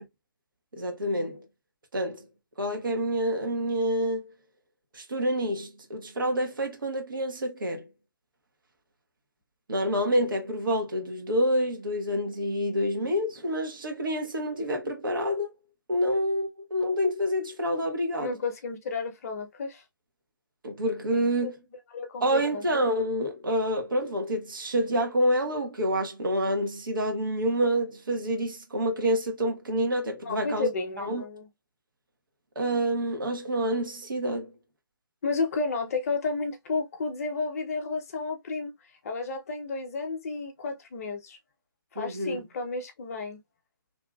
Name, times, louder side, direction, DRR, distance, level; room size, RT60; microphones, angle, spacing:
voice 1, 0.7-1.4 1.9-2.3 2.6-4.3 4.9-7.9 9.7-15.5 15.9-18.4 20.6-21.6 22.2-30.7 31.0-31.2 32.5-34.5 41.9-42.4, equal, 70° right, 1.0 m, -28 dB
voice 2, 18.2-19.8 21.1-21.5 21.9-22.6 30.2-31.5 35.2-38.7 39.0-41.4 41.9-43.4, left 4 dB, 40° left, 0.7 m, -32 dB
2.7 x 2.5 x 2.2 m
figure-of-eight pair, 140°, 12 cm